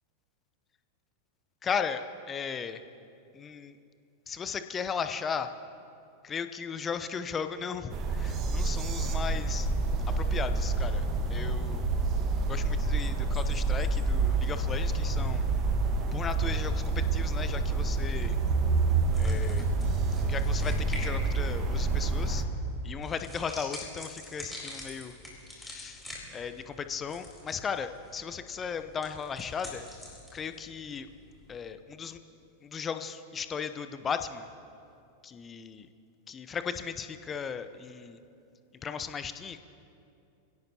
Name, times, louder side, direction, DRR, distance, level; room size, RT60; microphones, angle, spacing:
voice 1, 1.6-2.8 3.3-3.8 4.3-5.5 6.2-9.7 10.2-11.0 11.3-11.8 12.4-15.4 16.1-18.4 19.2-19.7 20.3-22.4 22.8-25.1 25.5-26.0 26.3-29.8 30.3-31.1 31.5-32.2 32.6-34.5 35.2-35.9 36.3-38.2 38.8-39.6, left 6 dB, 20° left, 10 dB, 0.8 m, -36 dB
sound 1, 7.9-22.4, right 3 dB, 30° right, 1.6 m, -28 dB
sound 2, 18.9-31.7, left 1 dB, 5° left, 4.1 m, -47 dB
25.5 x 17.0 x 3.0 m, 2.6 s
figure-of-eight pair, 90°, 0 cm